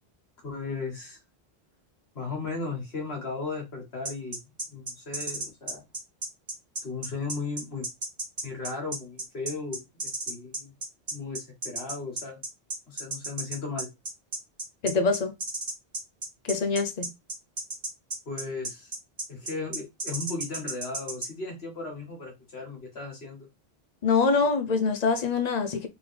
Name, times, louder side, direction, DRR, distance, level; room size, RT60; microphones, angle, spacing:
voice 1, 0.4-1.2 2.1-4.4 4.7-5.8 6.8-7.9 8.4-10.7 11.1-12.4 12.9-13.9 18.3-18.9 19.3-23.5, left 4 dB, 80° left, 1.9 m, -36 dB
sound 1, 4.0-21.3, right 2 dB, 50° right, 1.4 m, -33 dB
voice 2, 14.8-15.3 16.4-17.1 24.0-25.9, left 4 dB, 45° left, 0.8 m, -24 dB
3.7 x 3.2 x 3.3 m
omnidirectional pair, 1.0 m